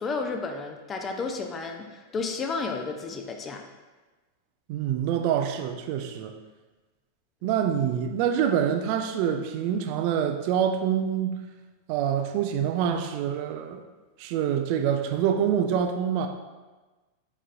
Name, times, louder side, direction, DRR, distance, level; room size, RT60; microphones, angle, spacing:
voice 1, 0.0-3.6 7.4-7.5, left 4 dB, 25° left, 4 dB, 0.5 m, -32 dB
voice 2, 4.7-6.3 7.4-11.4 11.9-13.8 14.2-16.3, right 8 dB, 45° right, 6 dB, 0.4 m, -26 dB
5.0 x 4.2 x 2.5 m, 1.2 s
figure-of-eight pair, 90°, 0 cm